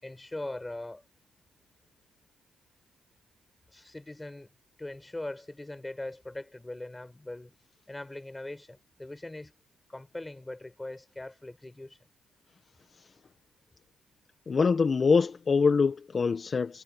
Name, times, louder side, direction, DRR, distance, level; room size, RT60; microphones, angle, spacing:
voice 1, 0.0-1.0 3.7-4.5 4.8-7.6 7.9-9.5 9.9-12.0 16.4-16.6, left 2 dB, 15° left, 5.3 m, -41 dB
voice 2, 14.5-16.8, left 5 dB, 40° left, 1.1 m, -24 dB
cardioid pair, 90°, 0 cm